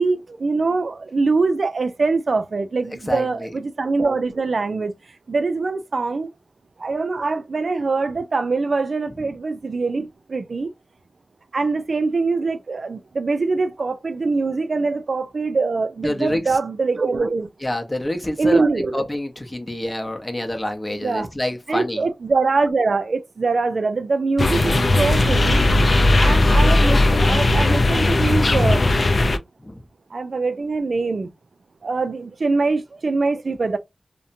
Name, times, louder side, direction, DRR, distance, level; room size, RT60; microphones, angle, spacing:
voice 1, 0.0-4.9 5.3-6.3 6.8-10.7 11.5-17.5 18.4-19.1 21.0-21.3 21.7-25.6 26.2-28.9 30.1-31.3 31.8-33.8, right 3 dB, 75° right, 0.3 m, -23 dB
voice 2, 3.1-3.5 16.0-16.6 17.6-18.6 18.9-22.0 29.6-29.8, left 1 dB, 25° left, 0.7 m, -27 dB
sound 1, 24.4-29.4, left 2 dB, 60° left, 0.4 m, -17 dB
2.7 x 2.1 x 2.5 m
wide cardioid pair, 65°, 0 cm